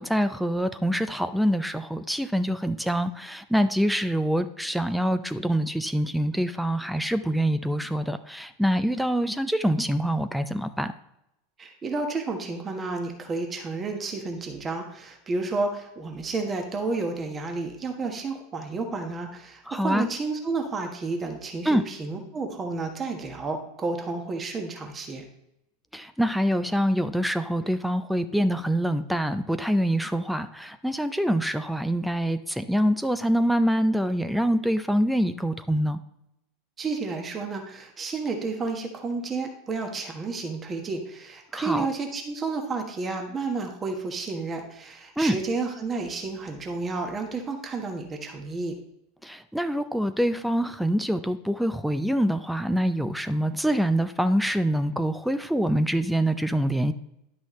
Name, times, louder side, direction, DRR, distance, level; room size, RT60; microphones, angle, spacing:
voice 1, 0.0-10.9 19.7-20.1 21.7-21.8 25.9-36.0 41.5-41.9 45.2-45.4 49.2-56.9, equal, ahead, 11 dB, 0.5 m, -25 dB
voice 2, 11.6-25.2 36.8-48.7, right 3 dB, 25° right, 4 dB, 1.3 m, -31 dB
10.5 x 6.2 x 3.1 m, 0.82 s
figure-of-eight pair, 85°, 0 cm